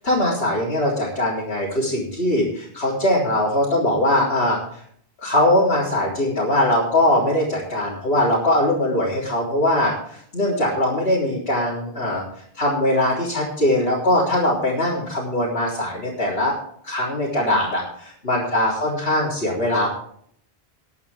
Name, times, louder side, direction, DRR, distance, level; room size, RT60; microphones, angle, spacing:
voice 1, 0.0-4.8 5.2-12.2 12.5-16.5 16.8-19.9, left 1 dB, 70° left, -6 dB, 3.8 m, -21 dB
21.0 x 8.6 x 3.6 m, 0.64 s
omnidirectional pair, 1.1 m